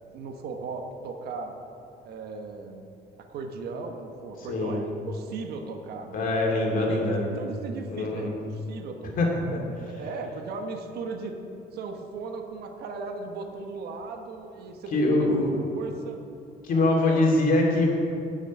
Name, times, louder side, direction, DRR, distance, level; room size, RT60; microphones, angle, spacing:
voice 1, 0.1-1.6 2.0-2.8 3.3-6.3 6.7-9.3 9.8-11.3 11.7-15.3 15.6-16.2 16.7-17.3, right 4 dB, 70° right, 4 dB, 1.3 m, -37 dB
voice 2, 6.1-7.3 7.9-8.3 9.2-9.6 9.9-10.0 14.9-15.5 16.6-18.0, left 2 dB, 55° left, -1 dB, 2.6 m, -23 dB
9.9 x 6.5 x 8.2 m, 2.7 s
cardioid pair, 110°, 17 cm